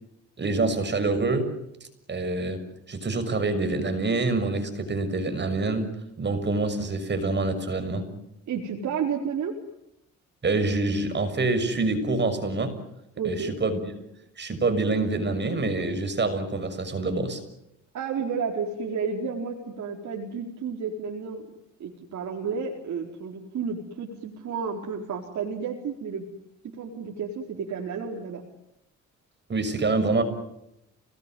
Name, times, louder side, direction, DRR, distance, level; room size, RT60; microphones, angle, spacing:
voice 1, 0.4-1.5 2.1-8.1 10.4-12.8 13.2-13.8 14.4-17.4 29.5-30.2, right 3 dB, 35° right, 9 dB, 6.4 m, -26 dB
voice 2, 8.5-9.5 13.2-13.5 17.9-21.5 21.8-26.2 26.7-28.4, right 6 dB, 65° right, -1 dB, 4.4 m, -31 dB
30.0 x 20.0 x 9.3 m, 0.83 s
cardioid pair, 90°, 30 cm